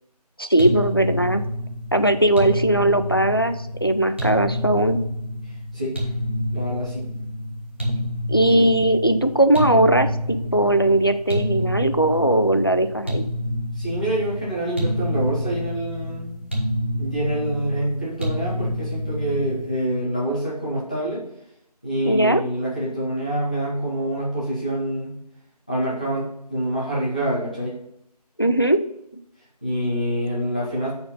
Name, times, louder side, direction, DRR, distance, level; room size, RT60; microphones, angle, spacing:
voice 1, 0.4-1.4 1.9-3.5 3.8-5.0 8.3-13.3 22.1-22.4 28.4-28.8, right 1 dB, 35° left, 9 dB, 0.4 m, -19 dB
sound 1, 0.6-19.9, left 1 dB, 20° right, 0.9 m, -28 dB
voice 2, 6.5-7.1 13.7-16.4 17.0-21.2 21.8-25.1 25.7-27.8 29.6-30.9, right 1 dB, 10° left, -8 dB, 1.1 m, -26 dB
9.0 x 4.3 x 4.0 m, 0.79 s
figure-of-eight pair, 175°, 21 cm